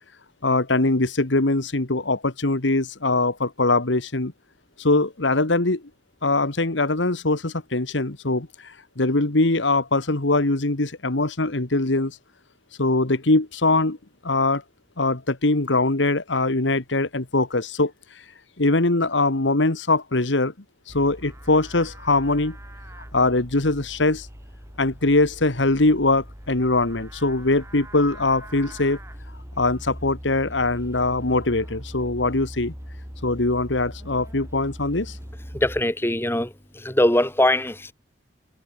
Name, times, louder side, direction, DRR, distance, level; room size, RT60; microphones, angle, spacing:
voice 1, 0.4-4.3 4.8-5.8 6.2-12.2 12.8-14.0 14.2-14.6 15.0-17.9 18.6-20.5 20.9-22.6 23.1-24.3 24.8-29.0 29.6-32.7 33.2-35.2, left 2 dB, 80° left, 1.8 m, -22 dB
Livestock farm animals working animals, 20.9-35.8, equal, 15° right, 7.7 m, -40 dB
voice 2, 35.6-36.5 36.8-37.9, left 1 dB, 10° left, 3.0 m, -21 dB
head